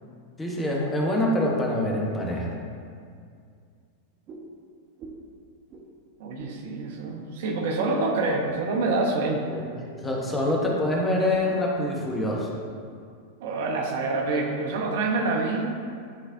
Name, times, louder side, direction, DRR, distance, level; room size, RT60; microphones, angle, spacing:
voice 1, 0.4-2.5 9.5-9.7 10.0-12.5 14.3-14.4, left 1 dB, 15° left, -2 dB, 1.2 m, -25 dB
sound 1, 4.3-4.5 5.0-5.3 5.7-5.9 6.4-6.6 7.0-7.2 7.8-8.0 8.5-8.6 9.1-9.3 9.9-10.1 10.6-10.8 11.3-11.5 11.8-12.2 12.7-12.8 13.4-13.5, right 4 dB, 40° right, 1.0 m, -45 dB
voice 2, 6.2-9.5 13.4-15.7, right 3 dB, 65° right, 1 dB, 0.9 m, -26 dB
11.0 x 3.9 x 2.7 m, 2.3 s
hypercardioid pair, 100°, 0 cm